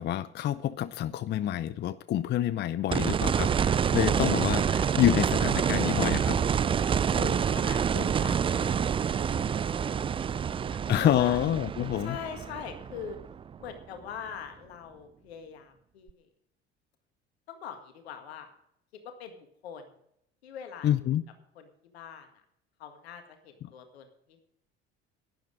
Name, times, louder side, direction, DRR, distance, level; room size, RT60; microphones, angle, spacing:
voice 1, 0.0-6.4 10.9-12.2 20.8-21.2, left 11 dB, 35° left, 18 dB, 0.5 m, -27 dB
sound 1, 2.9-13.8 16.1-16.2, right 7 dB, 15° right, 0.4 m, -27 dB
voice 2, 7.1-9.6 9.8-10.0 10.3-11.4 12.0-13.2 13.6-16.3 17.5-18.5 18.9-19.9 20.4-21.1 21.6-22.4 22.8-24.4, left 7 dB, 70° left, 7 dB, 1.9 m, -43 dB
12.0 x 10.5 x 5.0 m, 0.75 s
figure-of-eight pair, 60°, 32 cm